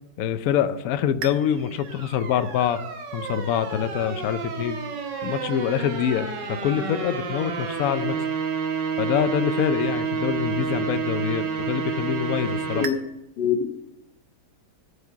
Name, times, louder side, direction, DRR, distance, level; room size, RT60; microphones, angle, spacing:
voice 1, 0.2-2.8 3.1-4.8 5.2-8.3 9.0-12.8, left 9 dB, 90° left, 11 dB, 0.7 m, -25 dB
sound 1, 1.2-12.9, right 6 dB, 60° right, 1.7 m, -30 dB
voice 2, 13.4-13.8, left 7 dB, 60° left, 8 dB, 1.5 m, -24 dB
14.0 x 5.5 x 7.3 m, 0.89 s
omnidirectional pair, 2.3 m